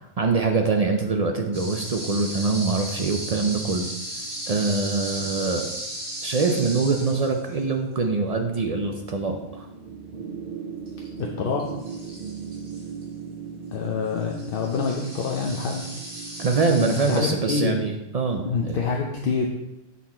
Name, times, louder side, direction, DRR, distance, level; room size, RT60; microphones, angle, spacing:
voice 1, 0.2-3.9 4.5-5.7 6.2-9.7 16.4-18.8, right 4 dB, 65° right, 3 dB, 0.3 m, -24 dB
sound 1, 1.5-17.2, right 2 dB, 35° right, 2.1 m, -36 dB
voice 2, 11.2-11.6 13.7-15.9 17.1-17.8 18.4-19.5, left 4 dB, 50° left, 0 dB, 0.8 m, -26 dB
8.4 x 4.1 x 4.2 m, 0.92 s
omnidirectional pair, 1.4 m